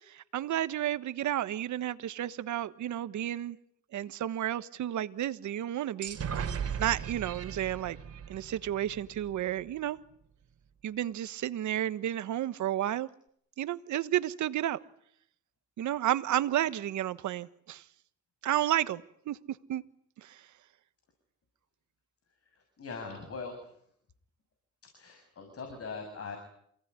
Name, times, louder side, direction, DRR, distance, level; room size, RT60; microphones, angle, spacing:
voice 1, 0.1-3.6 3.9-6.2 6.8-8.0 8.3-10.0 10.8-13.1 13.6-14.8 15.8-17.8 18.4-19.8 20.2-20.4, right 12 dB, 70° right, 1.4 m, -32 dB
sound 1, 6.0-9.7, right 7 dB, 55° right, 3.5 m, -37 dB
voice 2, 22.5-23.7 24.8-26.4, left 4 dB, 50° left, 7.3 m, -41 dB
28.0 x 18.0 x 9.7 m
cardioid pair, 90°, 30 cm